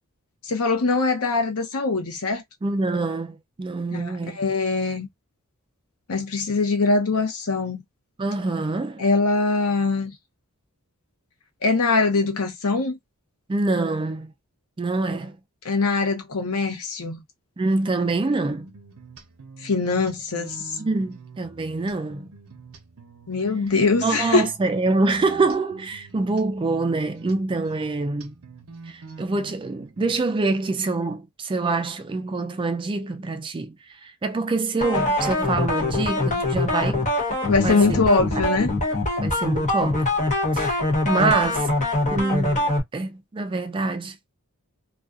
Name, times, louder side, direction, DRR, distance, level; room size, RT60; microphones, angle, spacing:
voice 1, 0.4-2.4 3.9-5.1 6.1-7.8 9.0-10.1 11.6-13.0 15.6-17.2 19.6-20.8 23.3-24.5 37.5-38.7, left 3 dB, 75° left, 0.7 m, -22 dB
voice 2, 2.6-4.4 8.2-9.0 13.5-14.3 14.8-15.4 17.6-18.7 20.8-22.3 24.0-28.3 28.9-37.0 37.6-38.0 38.4-38.5 39.2-40.1 40.5-41.7 42.1-44.2, right 3 dB, 20° right, 0.3 m, -25 dB
sound 1, 18.5-30.2, right 4 dB, 70° right, 0.6 m, -45 dB
sound 2, 34.8-42.8, left 2 dB, 30° left, 0.8 m, -23 dB
2.4 x 2.4 x 2.4 m
head